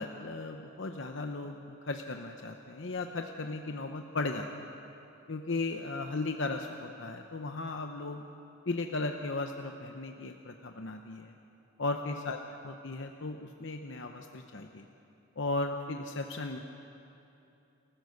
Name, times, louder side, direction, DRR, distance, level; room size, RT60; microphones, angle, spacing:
voice 1, 0.0-4.7 5.3-8.2 8.7-11.3 11.8-14.9 15.4-16.6, left 2 dB, 60° left, 4 dB, 0.8 m, -36 dB
28.5 x 14.5 x 6.6 m, 2.9 s
head